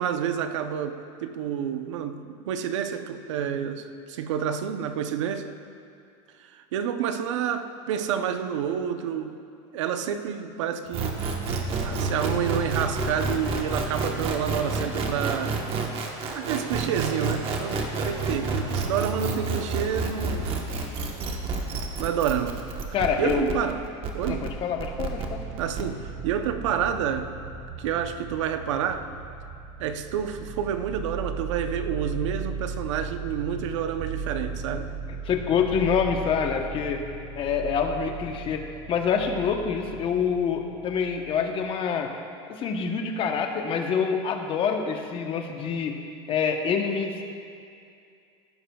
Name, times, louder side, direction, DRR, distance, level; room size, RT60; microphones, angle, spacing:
voice 1, 0.0-5.5 6.4-9.4 9.7-11.3 11.8-15.6 16.3-20.5 22.0-22.6 23.2-23.8 24.1-24.5 25.6-27.3 27.8-29.1 29.8-34.9, right 8 dB, 90° right, 9 dB, 0.7 m, -29 dB
sound 1, 10.9-25.8, right 4 dB, 40° right, 1.2 m, -29 dB
voice 2, 22.9-23.5 24.3-25.4 35.2-37.1 37.4-42.1 42.5-46.0 46.3-47.3, left 6 dB, 35° left, 4 dB, 0.9 m, -26 dB
sound 2, 24.6-41.6, right 5 dB, 55° right, 2.7 m, -37 dB
15.0 x 11.0 x 2.3 m, 2.5 s
supercardioid pair, 135°, 15 cm